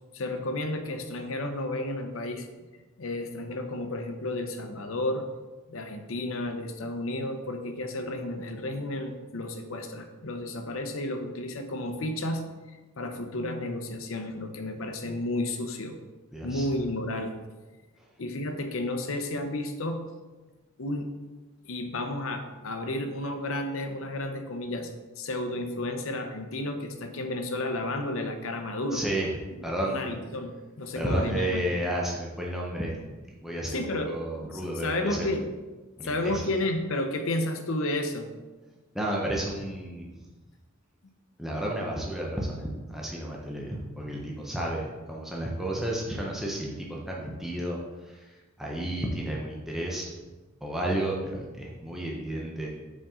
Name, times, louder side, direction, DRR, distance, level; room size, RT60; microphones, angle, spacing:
voice 1, 0.1-2.5 3.0-5.3 5.7-12.4 12.7-16.0 16.4-17.3 18.2-20.0 20.8-21.1 21.6-24.9 25.2-29.0 29.8-31.6 33.7-34.1 34.5-35.4 36.0-38.3, left 1 dB, 70° left, 6 dB, 0.7 m, -32 dB
voice 2, 16.3-16.7 18.0-18.1 28.9-29.3 29.6-30.1 30.9-32.9 33.4-35.4 36.0-36.5 38.9-40.3 41.4-50.1 50.6-52.7, right 1 dB, ahead, -3 dB, 0.7 m, -32 dB
5.3 x 5.1 x 3.7 m, 1.2 s
head